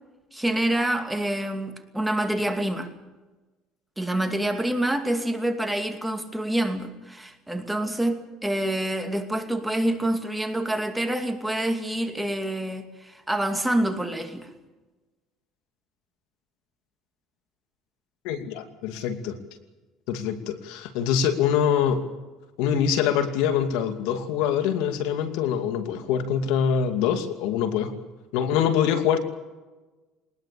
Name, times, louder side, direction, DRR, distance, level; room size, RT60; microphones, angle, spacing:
voice 1, 0.3-2.9 4.0-14.5, right 1 dB, 5° right, 2.5 m, -27 dB
voice 2, 18.2-19.4 20.1-22.1 22.6-27.9 28.3-29.2, left 8 dB, 80° left, 2.5 m, -24 dB
22.0 x 20.0 x 7.0 m
supercardioid pair, 100°, 0 cm